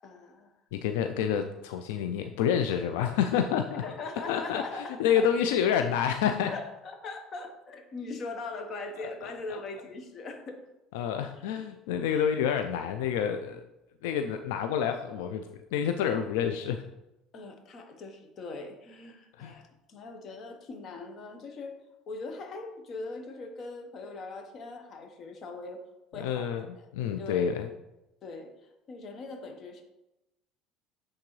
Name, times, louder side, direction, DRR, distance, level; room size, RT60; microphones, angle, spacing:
voice 1, 0.0-0.5 3.8-5.3 6.5-10.6 12.1-12.3 17.3-21.8 22.1-25.9 26.1-26.9 27.2-27.5 28.2-28.5 28.9-29.8, left 3 dB, 45° left, 5 dB, 1.1 m, -41 dB
voice 2, 0.7-3.8 4.3-4.6 5.0-6.5 9.5-9.6 10.9-13.6 14.0-15.4 15.7-16.8 19.4-19.5 26.2-26.7 26.9-27.7, left 8 dB, 90° left, 7 dB, 0.4 m, -28 dB
8.3 x 3.7 x 3.2 m, 0.92 s
supercardioid pair, 100°, 0 cm